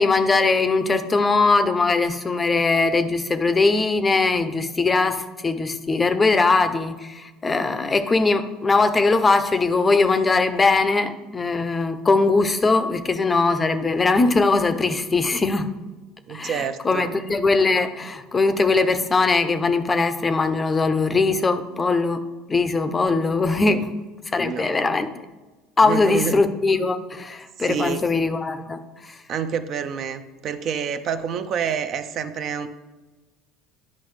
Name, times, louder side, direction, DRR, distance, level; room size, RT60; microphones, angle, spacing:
voice 1, 0.0-15.7 16.3-22.2 22.5-23.9 24.3-25.1 25.8-29.2, left 3 dB, 25° left, 10 dB, 0.5 m, -21 dB
voice 2, 16.3-17.1 23.7-23.9 24.4-25.0 25.8-26.4 27.6-28.1 29.3-32.7, right 7 dB, 50° right, 10 dB, 0.5 m, -28 dB
9.7 x 5.2 x 3.2 m, 1.2 s
supercardioid pair, 95°, 0 cm